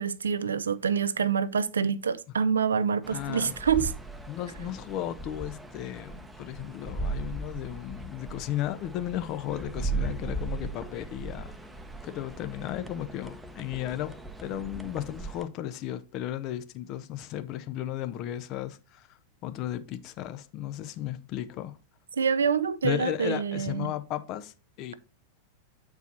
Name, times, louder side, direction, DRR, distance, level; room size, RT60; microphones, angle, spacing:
voice 1, 0.0-3.9 22.2-23.9, right 6 dB, 70° right, 0.5 m, -26 dB
sound 1, 3.0-15.4, right 2 dB, 5° right, 0.8 m, -38 dB
voice 2, 3.1-3.5 4.3-11.5 12.0-21.7 22.8-24.9, left 12 dB, 40° left, 0.7 m, -35 dB
8.1 x 4.7 x 4.3 m
figure-of-eight pair, 90°, 0 cm